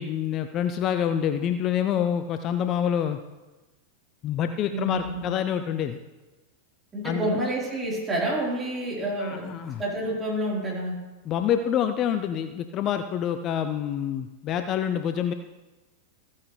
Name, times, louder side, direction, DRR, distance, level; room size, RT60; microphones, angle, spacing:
voice 1, 0.0-3.2 4.2-6.0 7.0-7.4 9.2-9.8 11.2-15.3, left 9 dB, 35° left, 9 dB, 0.5 m, -27 dB
voice 2, 4.7-5.3 6.9-11.0, right 1 dB, 20° right, -4 dB, 4.1 m, -29 dB
14.5 x 9.5 x 3.3 m, 1.1 s
figure-of-eight pair, 90°, 0 cm